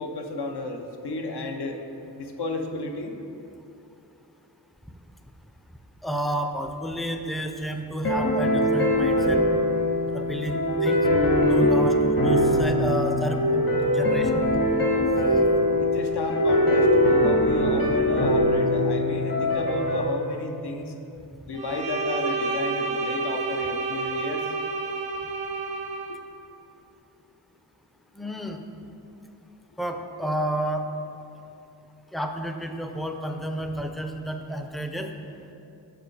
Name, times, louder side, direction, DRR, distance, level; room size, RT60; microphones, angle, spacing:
voice 1, 0.0-1.8 2.2-3.1 15.8-20.9 21.5-24.5 26.1-26.2, left 2 dB, 75° left, 4 dB, 0.7 m, -32 dB
voice 2, 6.0-9.4 10.1-11.0 11.5-12.0 12.2-14.5 28.1-28.6 29.8-30.9 32.1-35.1, right 1 dB, ahead, 5 dB, 0.4 m, -31 dB
sound 1, 8.0-20.0, left 1 dB, 55° left, 1.3 m, -22 dB
Bowed string instrument, 21.5-26.2, right 4 dB, 65° right, 0.6 m, -29 dB
6.3 x 5.0 x 4.6 m, 2.7 s
wide cardioid pair, 55°, 40 cm